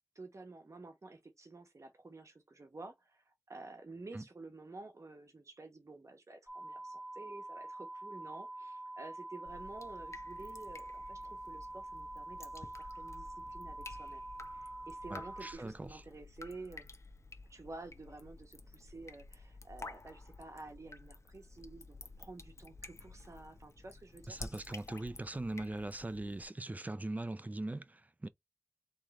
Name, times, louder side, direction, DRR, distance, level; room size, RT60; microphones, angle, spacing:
voice 1, 0.1-14.2 14.5-16.9 17.5-24.4, right 3 dB, 80° right, 1.0 m, -51 dB
sound 1, 6.5-15.5, right 2 dB, 10° left, 1.4 m, -46 dB
Drip, 9.5-26.4, left 3 dB, 70° left, 0.7 m, -52 dB
voice 2, 15.1-16.0 24.3-28.3, right 2 dB, 30° right, 0.4 m, -41 dB
3.6 x 3.2 x 4.0 m
wide cardioid pair, 60°, 5 cm